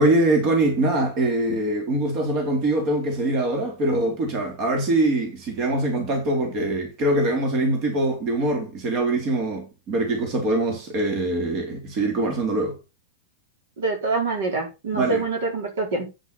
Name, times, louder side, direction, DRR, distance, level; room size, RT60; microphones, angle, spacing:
voice 1, 0.0-12.8 14.9-15.2, right 2 dB, 40° right, 3.6 m, -23 dB
voice 2, 13.8-16.1, right 3 dB, 65° right, 4.5 m, -25 dB
8.8 x 8.1 x 4.3 m
figure-of-eight pair, 100°, 0 cm